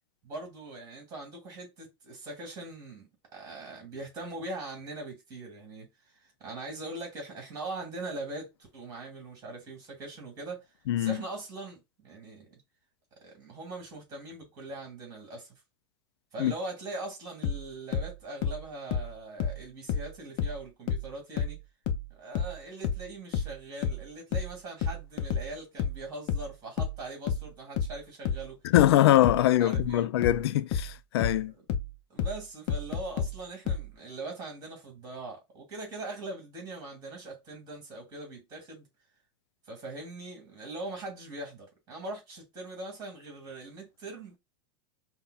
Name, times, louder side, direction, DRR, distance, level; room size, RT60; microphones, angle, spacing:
voice 1, 0.2-5.9 6.4-10.6 11.0-12.5 13.2-15.5 16.3-21.6 22.1-28.6 29.6-30.1 31.5-31.6 32.1-38.9 39.7-44.4, right 2 dB, 30° right, 2.3 m, -41 dB
sound 1, 17.4-20.6 20.9-33.9, left 6 dB, 40° left, 0.6 m, -31 dB
voice 2, 28.6-31.5, left 13 dB, 85° left, 0.4 m, -23 dB
5.5 x 2.3 x 2.3 m
supercardioid pair, 150°, 13 cm